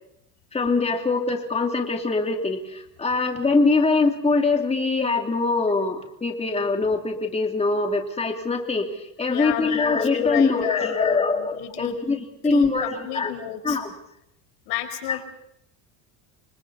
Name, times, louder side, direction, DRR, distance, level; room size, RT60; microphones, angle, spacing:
voice 1, 0.5-13.3 13.6-13.9 15.1-15.2, left 3 dB, 15° left, 3 dB, 3.0 m, -23 dB
voice 2, 9.3-12.0 12.4-13.8 14.7-15.2, left 12 dB, 75° left, 7 dB, 4.8 m, -31 dB
30.0 x 26.0 x 4.2 m, 0.76 s
supercardioid pair, 110°, 41 cm